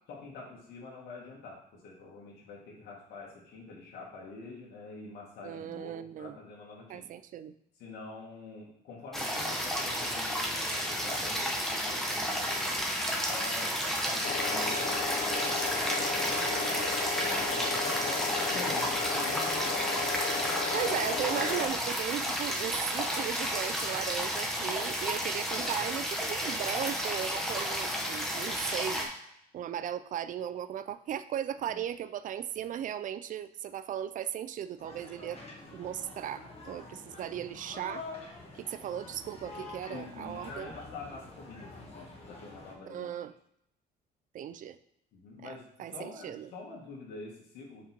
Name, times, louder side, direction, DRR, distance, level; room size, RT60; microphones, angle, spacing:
voice 1, 0.1-7.1 7.8-12.8 13.3-16.4 17.2-20.0 31.7-31.8 39.9-43.1 45.1-47.9, left 3 dB, 75° left, -4 dB, 2.1 m, -46 dB
voice 2, 5.4-6.3 6.9-7.5 16.4-17.0 20.7-29.1 29.5-35.4 35.7-38.0 38.5-40.7 42.9-43.3 44.3-44.8 45.4-45.5 45.8-46.5, right 10 dB, 50° right, 13 dB, 0.5 m, -37 dB
sound 1, 9.1-29.1, equal, ahead, 1.3 m, -32 dB
sound 2, 14.2-21.7, left 5 dB, 55° left, 0.7 m, -34 dB
sound 3, 34.8-42.7, left 3 dB, 35° left, 1.8 m, -47 dB
5.3 x 5.1 x 4.5 m, 0.77 s
cardioid pair, 110°, 17 cm